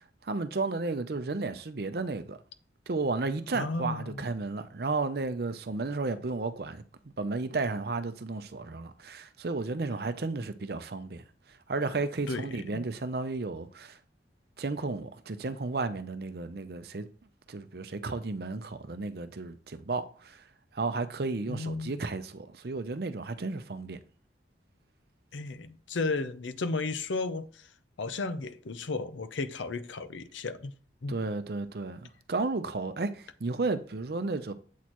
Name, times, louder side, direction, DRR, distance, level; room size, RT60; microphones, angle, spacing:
voice 1, 0.0-2.4 2.9-11.2 11.7-14.0 14.6-17.1 17.5-20.4 20.7-24.0 31.1-34.5, right 3 dB, 55° right, 0.6 m, -33 dB
voice 2, 3.5-4.2 12.3-12.8 21.5-22.0 25.3-27.7 28.0-30.7 31.0-31.2, left 3 dB, 90° left, 0.7 m, -34 dB
8.2 x 6.3 x 3.0 m
head